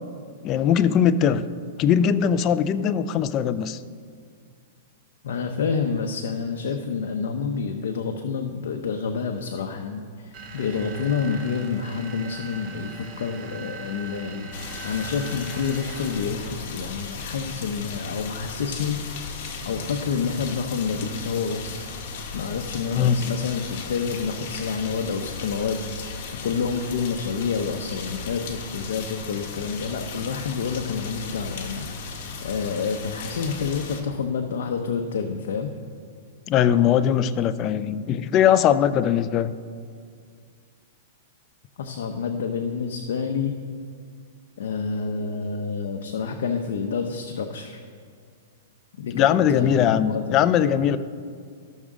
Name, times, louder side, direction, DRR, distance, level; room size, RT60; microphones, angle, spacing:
voice 1, 0.4-1.4 1.8-3.8 23.0-23.2 36.5-39.5 49.1-51.0, left 9 dB, 35° left, 13 dB, 0.4 m, -20 dB
voice 2, 5.2-21.9 22.3-25.8 26.4-31.9 32.4-35.7 41.8-43.5 44.6-47.8 49.0-50.5, left 5 dB, 75° left, 4 dB, 0.7 m, -28 dB
sound 1, 10.3-16.5, right 3 dB, 35° right, 1.1 m, -40 dB
sound 2, 14.5-34.0, left 5 dB, 55° left, 1.3 m, -36 dB
13.5 x 6.3 x 3.7 m, 2.1 s
hypercardioid pair, 140°, 0 cm